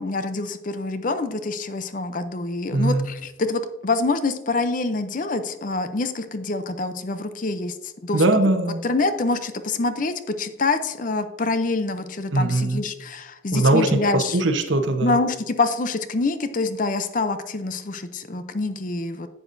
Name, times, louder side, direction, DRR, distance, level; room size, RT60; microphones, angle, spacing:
voice 1, 0.0-8.2 8.8-14.4 15.0-19.3, left 3 dB, 40° left, 10 dB, 0.6 m, -26 dB
voice 2, 2.7-3.1 8.1-8.8 12.3-12.8 13.5-13.9 14.1-15.1, right 2 dB, 75° right, 6 dB, 1.0 m, -20 dB
11.0 x 8.0 x 2.6 m, 1.0 s
head